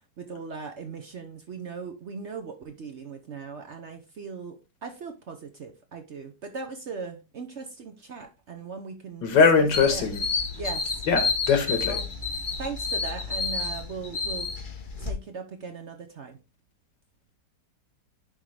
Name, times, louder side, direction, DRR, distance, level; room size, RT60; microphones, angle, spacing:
voice 1, 0.0-9.3 9.6-10.1 10.6-11.0 11.9-12.1 12.6-14.5 15.0-16.4, right 4 dB, 55° right, 0.9 m, -39 dB
voice 2, 9.2-10.2 11.1-12.0, left 5 dB, 85° left, 2.1 m, -21 dB
sound 1, 9.7-15.1, left 4 dB, 35° left, 1.0 m, -30 dB
10.5 x 3.6 x 3.3 m
omnidirectional pair, 1.9 m